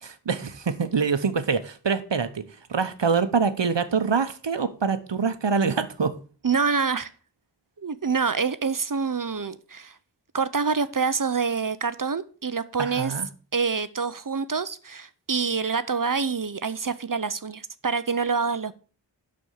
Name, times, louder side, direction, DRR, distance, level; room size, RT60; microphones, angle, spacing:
voice 1, 0.0-6.2 12.8-13.3, right 5 dB, 80° right, 0.9 m, -25 dB
voice 2, 6.4-7.1 7.8-10.0 10.3-13.1 13.5-18.7, right 5 dB, 50° right, 0.7 m, -26 dB
11.0 x 4.4 x 6.5 m
wide cardioid pair, 40°, 43 cm